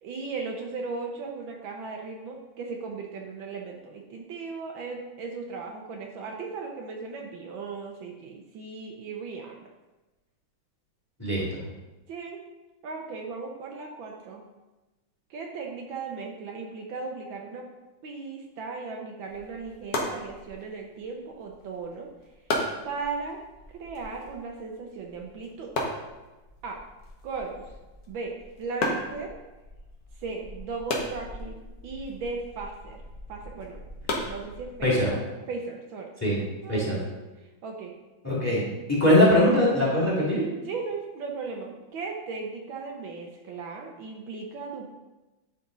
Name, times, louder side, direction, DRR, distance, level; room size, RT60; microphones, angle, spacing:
voice 1, 0.0-9.7 12.1-12.4 12.8-14.4 15.3-17.7 18.0-22.1 22.8-23.4 23.7-25.7 26.6-26.8 27.2-27.7 28.1-29.4 30.2-33.0 33.3-33.8 34.2-35.2 35.5-36.1 36.6-37.1 37.6-37.9 40.6-44.9, right 4 dB, 75° right, 1 dB, 1.5 m, -37 dB
sound 1, 19.2-35.1, left 2 dB, 55° left, 1.4 m, -36 dB
voice 2, 38.2-38.6 38.9-40.4, left 1 dB, 5° left, -6 dB, 2.3 m, -21 dB
10.0 x 4.1 x 3.9 m, 1.1 s
omnidirectional pair, 2.2 m